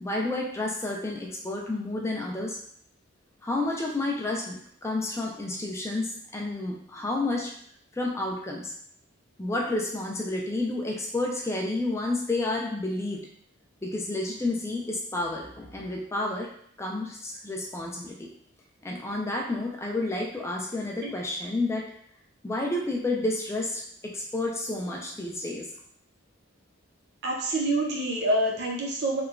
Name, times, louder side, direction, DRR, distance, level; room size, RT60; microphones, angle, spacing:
voice 1, 0.0-2.6 3.4-7.5 7.9-8.7 9.4-13.2 13.8-16.5 16.8-18.3 18.8-21.8 22.4-25.7, left 2 dB, 15° left, -1 dB, 0.3 m, -30 dB
voice 2, 27.2-29.2, right 1 dB, 50° right, 0 dB, 0.5 m, -26 dB
2.9 x 2.2 x 2.4 m, 0.65 s
head